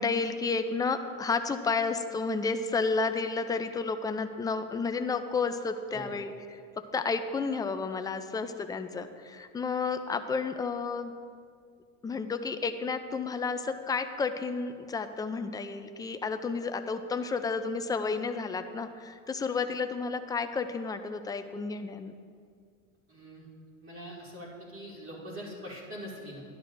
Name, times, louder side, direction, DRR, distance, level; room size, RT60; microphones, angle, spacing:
voice 1, 0.0-11.1 12.0-22.1, left 4 dB, 10° left, 8 dB, 0.3 m, -31 dB
voice 2, 23.1-23.5 23.8-26.4, equal, 30° right, -5 dB, 2.4 m, -43 dB
11.5 x 11.0 x 2.6 m, 2.2 s
supercardioid pair, 100°, 41 cm